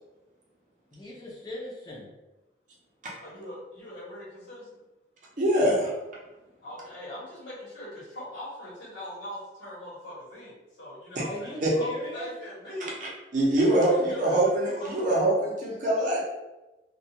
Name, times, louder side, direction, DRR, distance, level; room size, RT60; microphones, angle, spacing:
voice 1, 0.9-2.1 11.2-12.3, equal, 20° left, -5 dB, 0.6 m, -39 dB
voice 2, 3.2-4.8 6.6-13.0 13.6-15.1 15.6-15.7, left 1 dB, 60° left, -9 dB, 1.0 m, -41 dB
voice 3, 5.4-5.9 11.6-11.7 13.0-16.2, right 1 dB, 45° right, -4 dB, 0.6 m, -24 dB
2.3 x 2.2 x 2.8 m, 1.0 s
head